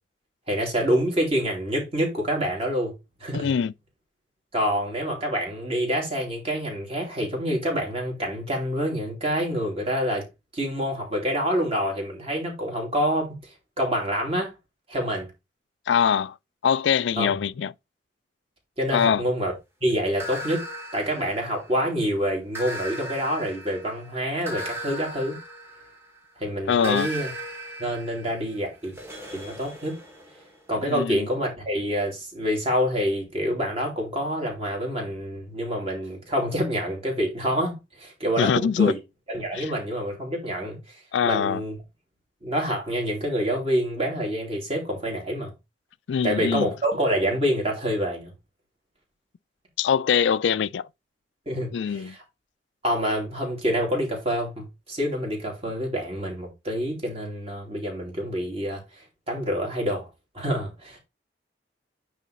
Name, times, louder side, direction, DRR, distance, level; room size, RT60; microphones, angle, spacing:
voice 1, 0.5-2.9 3.2-3.5 4.5-10.3 10.5-13.3 13.8-14.5 14.9-15.3 17.2-17.3 18.8-19.5 19.8-20.6 20.9-25.3 26.4-27.3 27.8-28.9 29.3-30.0 30.7-39.0 39.3-40.8 41.2-41.7 42.4-45.5 46.2-48.3 51.5-52.2 52.8-58.8 59.3-60.1 60.3-61.0, equal, 35° right, 2.9 m, -27 dB
voice 2, 3.3-3.7 15.9-16.4 16.6-17.7 18.9-19.2 26.7-27.1 30.8-31.3 38.4-39.0 39.5-39.7 41.1-41.6 46.1-46.7 49.8-50.9 51.7-52.2, left 7 dB, 80° left, 0.3 m, -23 dB
sound 1, 20.2-21.9 22.5-26.2 26.8-30.6, equal, 15° right, 1.6 m, -37 dB
9.2 x 3.2 x 4.2 m
head